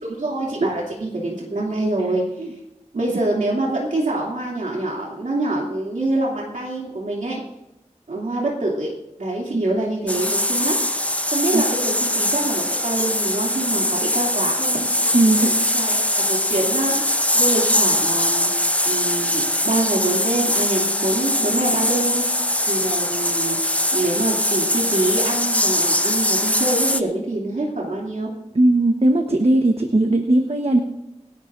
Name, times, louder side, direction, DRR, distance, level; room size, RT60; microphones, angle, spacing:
voice 1, 0.0-2.5 2.9-7.4 8.1-8.9 9.2-10.8 11.3-14.9 15.3-18.5 18.9-22.3 22.7-23.6 23.9-28.3, right 2 dB, 90° right, -3 dB, 2.8 m, -25 dB
sound 1, 10.1-27.0, left 1 dB, 10° left, 0.7 m, -21 dB
voice 2, 15.1-15.5 28.6-30.8, right 2 dB, 55° right, 4 dB, 1.2 m, -18 dB
27.5 x 11.5 x 2.6 m, 0.90 s
wide cardioid pair, 50°, 13 cm